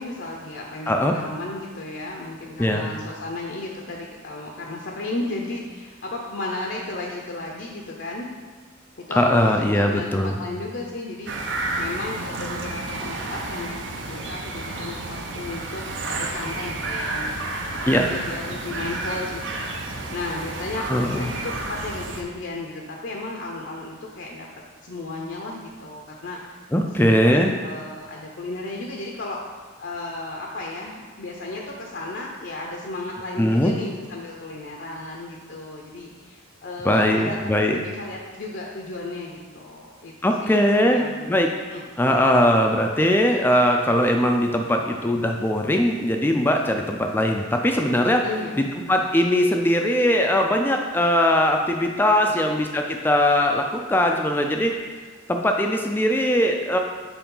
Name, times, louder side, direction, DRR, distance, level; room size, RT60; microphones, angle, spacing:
voice 1, 0.0-8.3 9.0-24.5 24.8-26.4 26.9-29.4 29.8-40.1 40.4-41.3 41.7-42.2 48.2-48.6 52.2-52.5, left 2 dB, 60° left, -1 dB, 0.6 m, -34 dB
voice 2, 9.1-10.3 17.9-18.1 20.9-21.3 26.7-27.5 33.4-33.7 36.8-37.8 40.2-41.5 42.0-48.2 48.6-54.7 55.3-56.8, left 1 dB, 10° left, 3 dB, 0.3 m, -20 dB
sound 1, 11.3-22.2, right 2 dB, 60° right, 0.7 m, -31 dB
6.9 x 4.5 x 3.8 m, 1.5 s
head